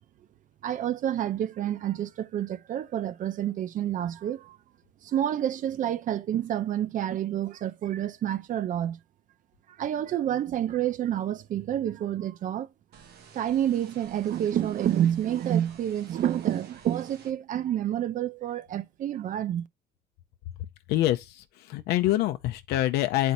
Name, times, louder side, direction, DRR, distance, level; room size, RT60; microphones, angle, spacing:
voice 1, 0.6-4.6 5.0-9.0 9.7-12.7 13.3-19.7, right 11 dB, 50° right, 0.6 m, -28 dB
sound 1, 12.9-17.3, right 6 dB, 80° right, 1.5 m, -52 dB
voice 2, 20.9-23.3, left 14 dB, 80° left, 0.5 m, -26 dB
9.2 x 4.4 x 2.6 m
cardioid pair, 100°, 17 cm